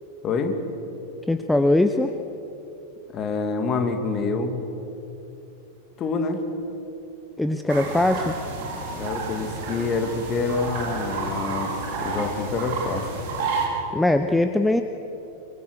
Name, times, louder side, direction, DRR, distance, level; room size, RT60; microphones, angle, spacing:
voice 1, 0.2-0.6 3.1-4.6 6.0-6.4 8.9-11.7 12.0-13.1, left 4 dB, 30° left, 5 dB, 2.6 m, -26 dB
voice 2, 1.3-2.1 7.4-8.3 13.9-14.8, left 1 dB, 5° left, 8 dB, 0.8 m, -21 dB
sound 1, 7.7-13.7, right 4 dB, 50° right, 4.7 m, -30 dB
25.0 x 23.5 x 6.6 m, 2.9 s
figure-of-eight pair, 90°, 0 cm